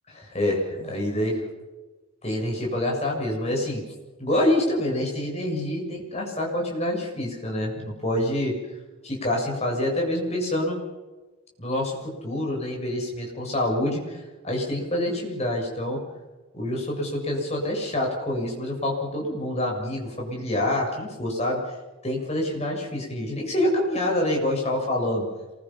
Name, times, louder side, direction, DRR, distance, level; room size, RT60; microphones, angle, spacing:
voice 1, 0.1-1.4 2.2-3.8 4.2-8.6 9.0-10.8 11.6-16.0 16.5-21.8 22.0-25.2, left 1 dB, 30° left, 0 dB, 7.3 m, -26 dB
27.0 x 21.5 x 5.8 m, 1.2 s
head